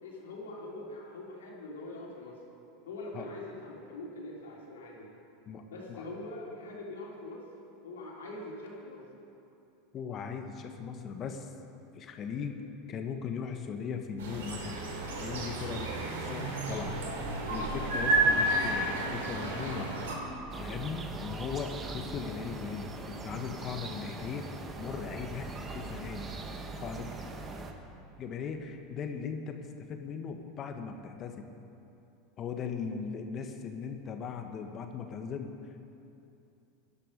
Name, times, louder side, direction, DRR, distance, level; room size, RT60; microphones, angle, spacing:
voice 1, 0.0-2.4 2.8-5.1 5.6-7.4 7.8-9.0, left 2 dB, 85° left, -3 dB, 3.2 m, -43 dB
voice 2, 9.9-11.5 11.9-12.6 12.9-14.9 15.2-16.9 17.5-20.1 20.6-26.3 26.8-27.1 28.2-31.5 32.4-35.5, left 6 dB, 40° left, 5 dB, 1.4 m, -38 dB
sound 1, 14.2-20.2, right 2 dB, 80° right, 2.7 m, -31 dB
sound 2, 20.5-27.7, right 3 dB, 30° right, 1.5 m, -41 dB
17.0 x 11.5 x 5.3 m, 2.8 s
hypercardioid pair, 90°, 0 cm